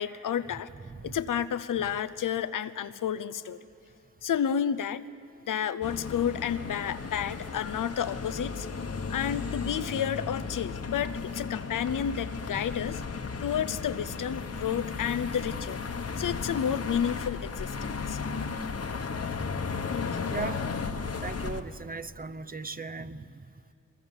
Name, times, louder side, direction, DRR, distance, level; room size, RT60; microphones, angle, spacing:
voice 1, 0.0-0.7 1.0-3.6 4.2-5.1 5.5-8.7 9.1-13.0 13.4-15.8 16.2-18.2 19.9-20.4, left 8 dB, 85° left, 14 dB, 0.7 m, -31 dB
voice 2, 0.8-1.2 20.3-20.7 21.2-23.7, right 4 dB, 30° right, 11 dB, 0.7 m, -38 dB
sound 1, 5.8-21.6, left 5 dB, 50° left, 1.2 m, -35 dB
22.0 x 21.0 x 7.3 m, 2.5 s
cardioid pair, 55°, 31 cm